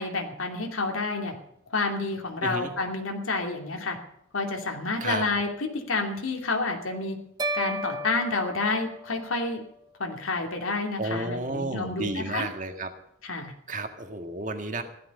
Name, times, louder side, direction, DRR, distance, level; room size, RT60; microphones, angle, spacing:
voice 1, 0.0-1.4 1.7-4.0 4.3-7.2 7.5-9.6 10.0-12.5 13.2-13.5, left 3 dB, 90° left, 2 dB, 2.6 m, -29 dB
voice 2, 2.4-2.7 5.0-5.2 11.0-12.9 13.7-14.8, right 2 dB, 40° right, 6 dB, 1.8 m, -32 dB
sound 1, 7.4-9.7, right 1 dB, 20° right, 1.2 m, -34 dB
16.5 x 12.0 x 5.4 m, 0.75 s
head